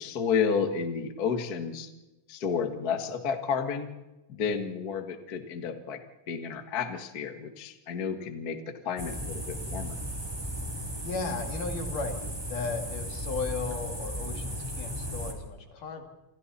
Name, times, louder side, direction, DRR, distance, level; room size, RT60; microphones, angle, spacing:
voice 1, 0.0-1.9 2.3-3.9 4.3-6.0 6.3-10.0, left 6 dB, 40° left, 7 dB, 1.6 m, -31 dB
voice 2, 4.4-4.7 11.0-16.0, left 4 dB, 75° left, 4 dB, 4.1 m, -36 dB
sound 1, 9.0-15.3, equal, 5° right, 3.2 m, -35 dB
28.0 x 27.5 x 4.3 m, 1.0 s
omnidirectional pair, 3.8 m